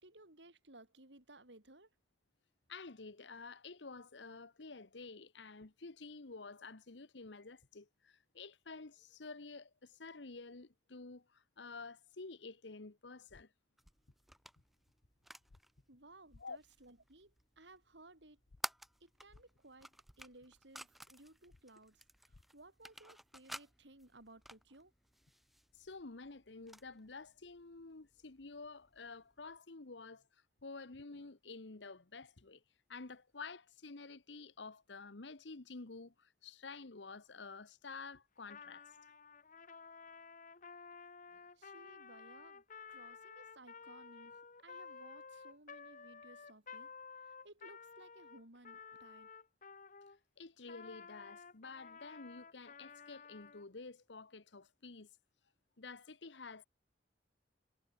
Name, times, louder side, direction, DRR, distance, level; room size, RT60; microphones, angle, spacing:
voice 1, 0.0-1.9 15.9-18.4 19.0-24.9 41.6-42.6 42.9-46.9 47.2-49.3, right 2 dB, 80° right, 5.9 m, -60 dB
voice 2, 2.7-13.5 16.4-16.6 25.7-32.6 32.9-38.8 41.3-41.5 50.4-55.1 55.8-56.6, left 3 dB, 85° left, 1.2 m, -50 dB
sound 1, 13.3-13.4 15.5-15.6 16.3-16.4 18.5-18.6 19.3-19.4 21.5-21.6 22.3-22.4, left 2 dB, 70° left, 0.8 m, -61 dB
sound 2, 13.8-29.6, equal, ahead, 0.3 m, -54 dB
Trumpet, 38.4-50.2 50.7-53.7, left 5 dB, 50° left, 2.0 m, -53 dB
head